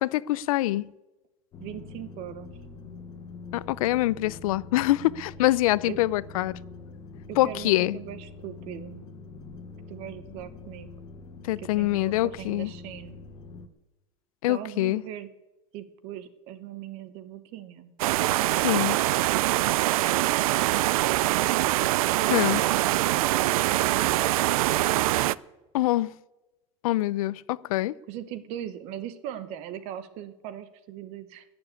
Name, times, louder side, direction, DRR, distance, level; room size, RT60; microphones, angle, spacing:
voice 1, 0.0-0.9 3.5-6.6 7.4-8.0 11.4-12.7 14.4-15.0 18.6-19.0 22.3-22.7 25.7-26.1 26.8-27.9, left 16 dB, 90° left, 0.5 m, -25 dB
sound 1, 1.5-13.7, left 4 dB, 20° left, 0.9 m, -44 dB
voice 2, 1.6-2.5 5.9-6.0 7.3-9.1 9.9-10.9 11.6-13.2 14.5-15.3 15.7-18.0 19.8-20.7 21.1-21.5 23.6-24.4 28.1-31.4, right 11 dB, 35° right, 0.9 m, -39 dB
sound 2, 18.0-25.3, right 17 dB, 90° right, 0.4 m, -24 dB
13.5 x 7.2 x 9.7 m
supercardioid pair, 180°, 18 cm